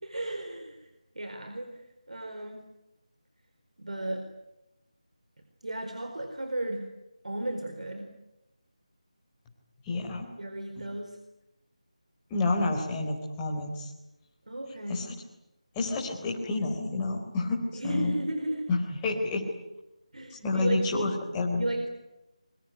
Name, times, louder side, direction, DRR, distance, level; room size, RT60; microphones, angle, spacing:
voice 1, 0.0-0.9 1.1-2.6 3.8-4.3 5.6-6.9 7.2-8.1 10.4-11.2 14.5-15.1 17.7-18.7 20.1-21.1 21.6-21.9, right 1 dB, 70° right, 6 dB, 4.4 m, -34 dB
voice 2, 9.8-10.3 12.3-13.9 14.9-15.0 15.7-18.1 18.7-19.5 20.4-21.6, left 3 dB, 10° left, -2 dB, 4.0 m, -29 dB
25.0 x 23.5 x 9.4 m, 0.92 s
figure-of-eight pair, 165°, 4 cm